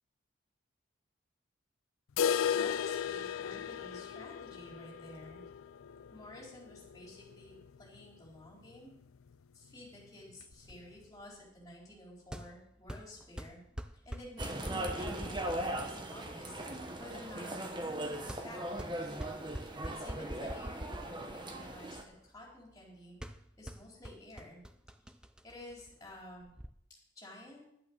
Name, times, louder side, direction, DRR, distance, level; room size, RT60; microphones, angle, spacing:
sound 1, 2.2-8.0 8.3-8.4 8.7-8.8 9.3-9.4 10.3-10.4, left 8 dB, 90° left, 0.4 m, -35 dB
voice 1, 2.5-5.4 6.1-8.9 9.5-13.6 14.1-19.2 19.8-23.2 23.6-24.6 25.4-26.5 27.2-27.6, left 1 dB, 20° left, -3 dB, 4.1 m, -52 dB
sound 2, 10.5-26.7, equal, 5° right, 0.4 m, -47 dB
sound 3, 14.4-22.0, right 1 dB, 25° right, 1.1 m, -39 dB
11.0 x 8.6 x 6.2 m, 0.75 s
head